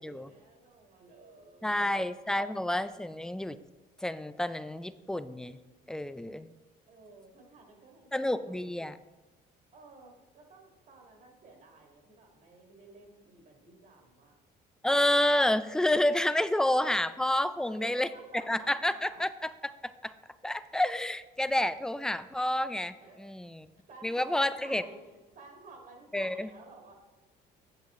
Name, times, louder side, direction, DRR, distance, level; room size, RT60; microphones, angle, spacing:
voice 1, 0.0-2.0 6.9-8.6 9.7-14.4 17.6-19.2 23.0-23.3 23.9-26.9, right 3 dB, 55° right, 1 dB, 1.9 m, -53 dB
voice 2, 1.6-3.6 4.0-5.6 5.9-6.5 8.1-9.0 14.8-18.1 18.5-19.3 19.6-19.7 20.0-20.1 20.4-23.7 24.0-24.8 26.1-26.5, left 1 dB, 5° left, 13 dB, 0.3 m, -29 dB
8.8 x 7.7 x 3.7 m, 1.2 s
cardioid pair, 110°, 17 cm